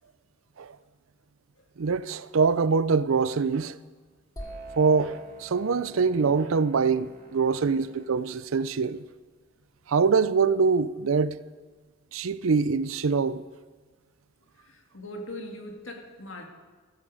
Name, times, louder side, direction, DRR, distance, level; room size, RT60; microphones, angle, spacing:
voice 1, 1.8-3.8 4.8-9.0 9.9-11.4 12.1-13.4, right 5 dB, 80° right, 0.5 m, -24 dB
sound 1, 4.4-8.1, right 2 dB, 15° left, 1.4 m, -46 dB
sound 2, 4.4-8.3, right 1 dB, 50° right, 3.5 m, -53 dB
voice 2, 14.6-16.5, left 1 dB, 65° left, 2.1 m, -40 dB
15.0 x 14.0 x 4.9 m
head